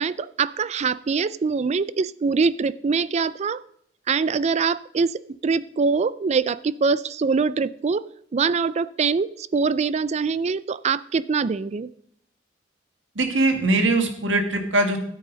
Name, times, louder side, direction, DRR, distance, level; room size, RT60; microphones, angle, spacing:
voice 1, 0.0-3.6 4.1-8.0 8.3-11.9, right 5 dB, 35° right, 18 dB, 0.4 m, -23 dB
voice 2, 13.2-15.0, right 2 dB, 85° right, 6 dB, 1.9 m, -21 dB
13.0 x 8.3 x 5.1 m, 0.67 s
head